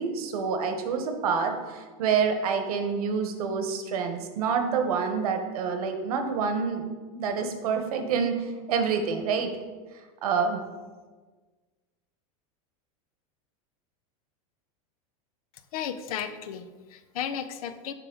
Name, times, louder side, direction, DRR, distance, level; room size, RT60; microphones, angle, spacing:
voice 1, 0.0-6.9 7.1-9.5 10.2-10.6, right 6 dB, 85° right, 6 dB, 1.0 m, -27 dB
voice 2, 15.7-17.9, left 8 dB, 85° left, 11 dB, 0.6 m, -34 dB
6.9 x 4.8 x 3.7 m, 1.4 s
supercardioid pair, 175°, 18 cm